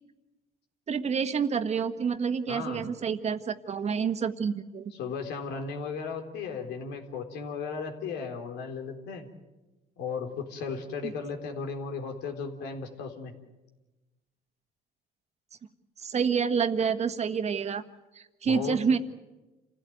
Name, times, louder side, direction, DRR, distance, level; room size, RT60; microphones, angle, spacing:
voice 1, 0.9-4.9 11.0-11.1 16.0-17.8 18.1-19.0, right 6 dB, 40° right, 9 dB, 1.6 m, -28 dB
voice 2, 2.5-3.0 4.9-9.3 10.0-13.3 18.4-18.8, left 5 dB, 85° left, 4 dB, 3.8 m, -36 dB
28.0 x 16.0 x 9.4 m, 1.1 s
cardioid pair, 110°, 17 cm